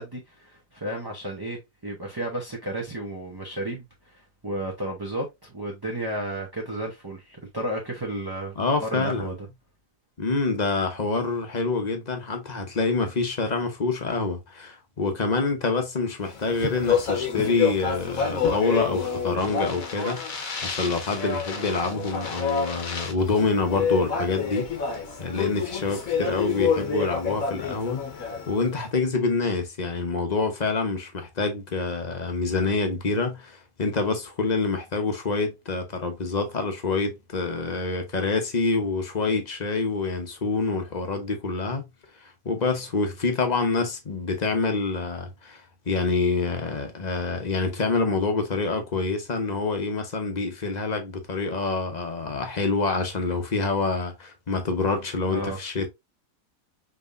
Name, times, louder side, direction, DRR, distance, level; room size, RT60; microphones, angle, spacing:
voice 1, 0.0-3.8 4.1-8.5 8.8-9.3 55.3-55.6, right 1 dB, 20° right, 0.8 m, -32 dB
voice 2, 8.6-9.4 10.2-20.3 20.6-24.7 24.9-28.1 28.5-41.8 42.2-55.9, left 3 dB, 35° left, 1.0 m, -26 dB
Speech, 16.3-28.7, left 6 dB, 80° left, 1.6 m, -28 dB
5.4 x 3.4 x 2.5 m
omnidirectional pair, 1.4 m